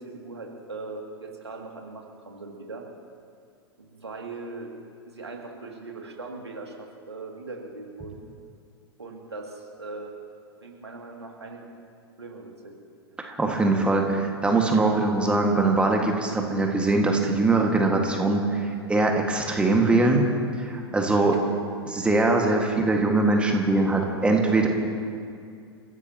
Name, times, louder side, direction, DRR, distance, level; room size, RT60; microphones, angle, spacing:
voice 1, 0.0-2.8 3.8-4.7 5.1-8.2 9.0-10.1 10.6-11.6 12.2-12.7 22.5-22.6, right 3 dB, 80° right, 0 dB, 2.5 m, -39 dB
voice 2, 13.2-20.3 20.6-21.4 21.9-24.7, right 2 dB, 10° right, 1 dB, 1.8 m, -22 dB
29.5 x 15.5 x 3.0 m, 2.3 s
figure-of-eight pair, 95°, 14 cm